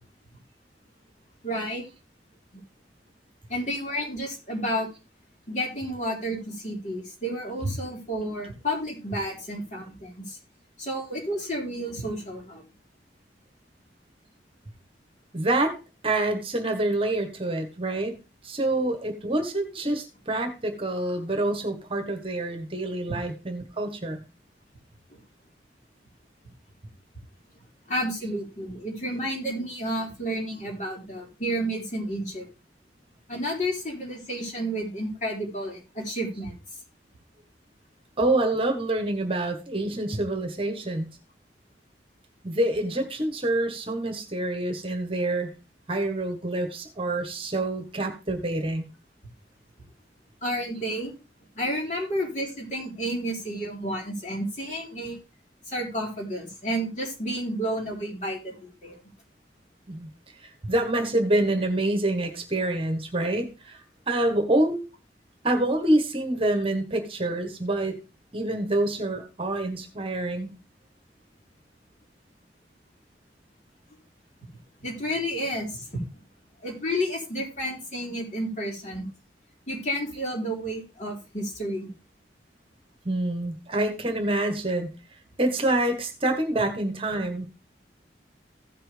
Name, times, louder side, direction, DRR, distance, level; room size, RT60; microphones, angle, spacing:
voice 1, 1.4-1.8 3.5-4.9 5.5-10.4 10.8-12.6 23.1-23.2 25.1-25.2 27.9-32.5 33.3-36.6 50.4-51.1 51.5-55.2 55.7-59.0 74.8-76.0 76.6-79.1 79.7-81.9, equal, 45° left, -2 dB, 4.1 m, -31 dB
voice 2, 15.3-15.8 16.0-18.2 18.4-24.2 38.2-41.2 42.4-45.5 45.9-48.9 59.9-60.1 60.4-64.8 65.4-68.0 68.3-70.5 83.0-84.9 85.4-87.5, right 1 dB, 30° right, 5 dB, 1.5 m, -26 dB
16.0 x 5.9 x 3.4 m, 0.30 s
head